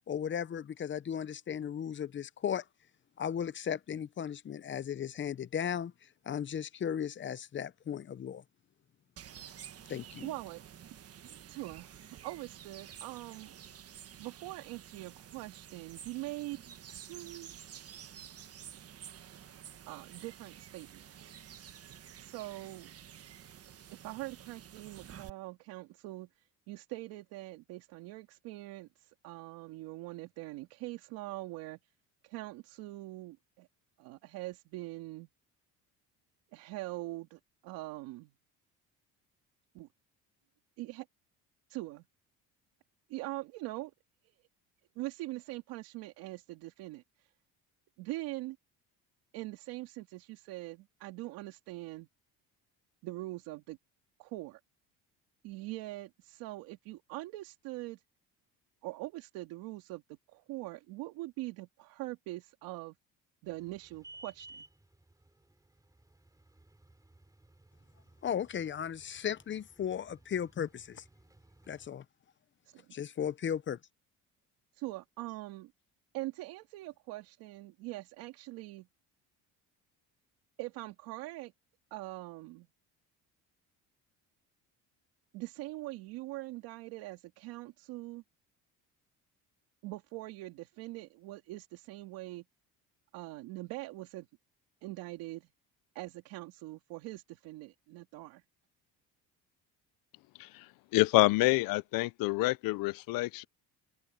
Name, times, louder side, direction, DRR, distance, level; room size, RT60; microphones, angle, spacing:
voice 1, 0.1-2.6 3.2-8.4 9.9-10.3 68.2-71.0 71.7-72.0 72.9-73.8, left 8 dB, 35° left, 0.7 m, -36 dB
sound 1, 9.2-25.3, right 9 dB, 40° right, 1.4 m, -51 dB
voice 2, 10.2-10.6 11.5-13.5 14.2-16.6 16.9-17.5 19.9-21.3 22.2-22.9 23.9-31.8 32.2-33.7 34.0-35.3 36.5-38.3 39.7-39.9 40.8-41.1 41.7-42.1 43.1-43.9 44.2-44.4 45.0-47.3 48.0-48.6 49.3-52.1 53.0-53.8 54.2-54.6 55.4-58.0 58.8-62.9 63.4-64.6 72.7-72.9 74.7-75.7 76.1-78.9 80.6-81.5 81.9-82.7 85.3-88.2 89.8-92.4 93.1-94.3 94.8-95.5 95.9-98.4, right 19 dB, 90° right, 2.6 m, -43 dB
sound 2, 63.4-71.9, right 2 dB, 10° right, 7.3 m, -58 dB
voice 3, 100.9-103.5, left 21 dB, 75° left, 0.7 m, -27 dB
open air
cardioid pair, 110°, 35 cm